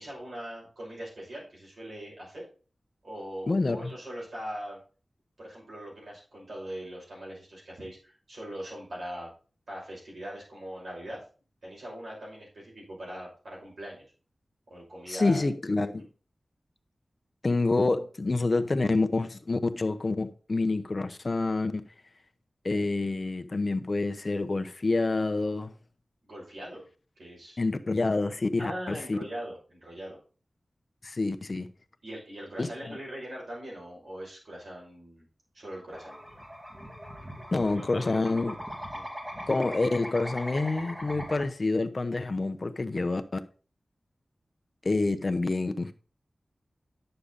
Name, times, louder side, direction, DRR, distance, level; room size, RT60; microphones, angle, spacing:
voice 1, 0.0-2.5 3.0-4.8 5.4-9.3 9.7-11.2 11.6-14.0 14.7-15.4 16.0-16.1 26.2-26.9 27.2-27.6 28.6-30.2 32.0-35.2 35.5-36.2 37.2-37.3 37.7-38.3 38.9-39.1, equal, 80° right, 6.0 m, -41 dB
voice 2, 3.5-3.9 15.1-16.0 17.4-21.8 22.6-25.7 27.6-29.2 31.0-31.7 32.6-33.0 37.5-38.5 39.5-43.4 44.8-45.9, left 3 dB, 45° left, 0.8 m, -27 dB
sound 1, 35.9-41.4, equal, 20° right, 2.2 m, -40 dB
10.0 x 6.8 x 4.0 m
wide cardioid pair, 90°, 0 cm